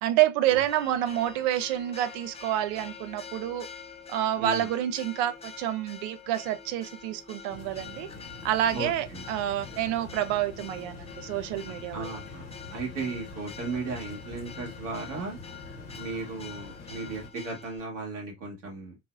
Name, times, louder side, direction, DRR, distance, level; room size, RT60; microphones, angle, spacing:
voice 1, 0.0-3.7 4.1-8.1 8.4-12.2, right 12 dB, 65° right, 0.6 m, -28 dB
Church bell, 0.6-17.8, left 6 dB, 15° left, 0.8 m, -46 dB
sound 1, 7.5-17.3, left 3 dB, 75° left, 0.9 m, -45 dB
voice 2, 8.7-9.2 11.9-15.4 15.9-19.0, right 3 dB, 80° right, 1.3 m, -36 dB
3.9 x 2.8 x 2.4 m
figure-of-eight pair, 45°, 36 cm